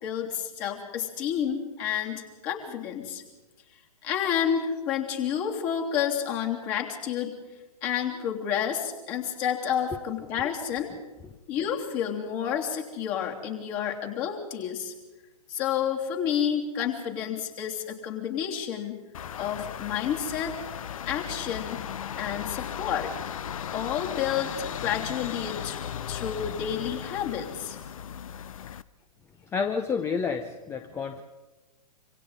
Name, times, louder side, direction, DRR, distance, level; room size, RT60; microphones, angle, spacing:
voice 1, 0.0-3.2 4.0-7.3 7.8-10.9 11.5-14.9 15.5-19.0 19.4-20.5 21.1-21.8 22.1-23.1 23.7-25.8 26.1-27.8, left 8 dB, 35° left, 1 dB, 3.2 m, -30 dB
sound 1, 19.1-28.8, left 9 dB, 55° left, 0.7 m, -36 dB
voice 2, 29.5-31.2, left 5 dB, 15° left, 9 dB, 0.8 m, -29 dB
26.5 x 25.5 x 4.1 m, 1.1 s
figure-of-eight pair, 120°, 21 cm